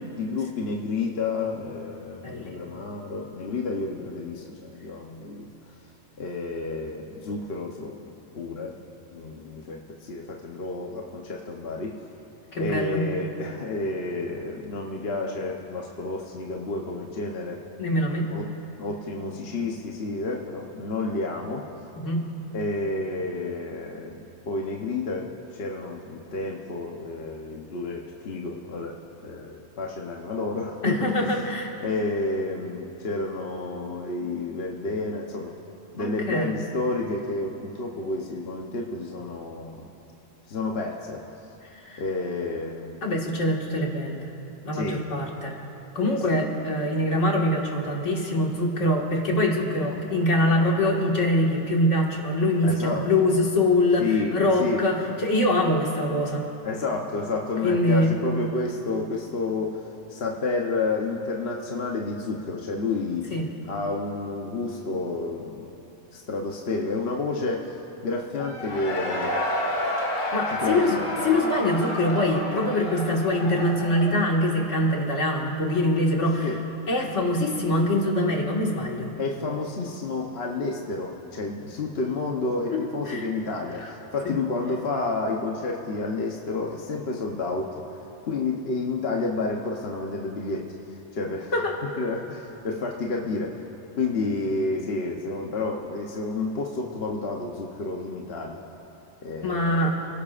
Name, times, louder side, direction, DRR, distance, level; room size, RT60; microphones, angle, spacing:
voice 1, 0.2-5.5 6.2-8.8 9.1-12.1 12.5-17.6 18.3-18.4 18.7-21.7 22.5-24.2 24.5-29.0 29.2-31.3 31.8-35.5 35.9-39.9 40.5-41.2 42.0-43.0 44.7-45.0 46.3-46.4 52.6-53.1 54.0-54.8 56.6-63.3 63.6-65.6 66.1-69.4 70.6-71.0 76.4-76.6 79.2-87.8 88.2-90.7 91.1-91.5 92.0-93.7 94.0-98.6 99.2-100.0, left 3 dB, 55° left, 0 dB, 1.1 m, -30 dB
voice 2, 2.2-2.5 12.5-13.0 17.8-18.2 22.0-22.2 30.8-31.7 36.0-36.6 41.8-42.0 43.0-44.3 44.6-45.6 46.0-56.5 57.6-58.1 63.3-63.5 70.3-76.5 76.9-79.1 83.1-83.3 84.2-84.3 91.5-91.8 99.4-100.0, left 1 dB, 75° left, -1 dB, 2.2 m, -24 dB
Cheering / Crowd, 68.4-75.1, left 1 dB, 90° left, 2.1 m, -30 dB
29.5 x 17.0 x 2.5 m, 3.0 s
omnidirectional pair, 1.3 m